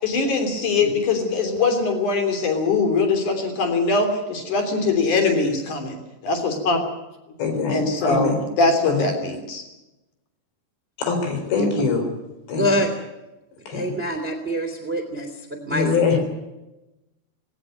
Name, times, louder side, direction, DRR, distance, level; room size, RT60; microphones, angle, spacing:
voice 1, 0.0-6.8 7.7-9.6 11.5-11.8, left 3 dB, 50° left, 5 dB, 4.5 m, -22 dB
voice 2, 7.4-8.4 8.9-9.1 11.0-12.1 12.5-12.8 13.7-13.9 15.7-16.2, left 5 dB, 75° left, 5 dB, 6.3 m, -23 dB
voice 3, 12.6-12.9 13.7-15.9, equal, 15° right, 5 dB, 2.2 m, -25 dB
19.0 x 18.0 x 9.4 m, 0.99 s
omnidirectional pair, 5.0 m